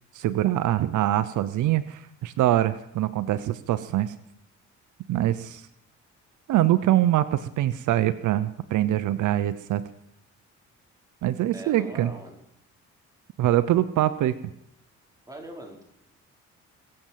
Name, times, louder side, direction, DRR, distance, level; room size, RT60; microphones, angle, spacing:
voice 1, 0.1-4.1 5.1-5.6 6.5-9.8 11.2-12.1 13.4-14.3, right 13 dB, 80° right, 14 dB, 0.8 m, -24 dB
voice 2, 11.5-12.4 15.3-15.8, right 1 dB, 10° right, 1 dB, 4.9 m, -41 dB
23.0 x 7.8 x 7.5 m, 0.77 s
cardioid pair, 90°, 30 cm